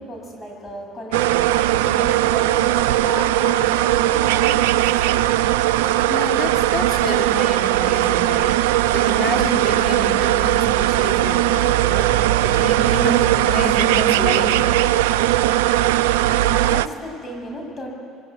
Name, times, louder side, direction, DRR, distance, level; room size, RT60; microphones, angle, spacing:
voice 1, 0.0-5.3 16.1-17.9, left 1 dB, 25° left, 1 dB, 7.3 m, -35 dB
sound 1, 1.1-16.9, right 14 dB, 80° right, 0.5 m, -18 dB
voice 2, 6.1-14.6, left 4 dB, 45° left, 2 dB, 3.7 m, -29 dB
23.0 x 21.5 x 9.5 m, 2.4 s
hypercardioid pair, 70°, 0 cm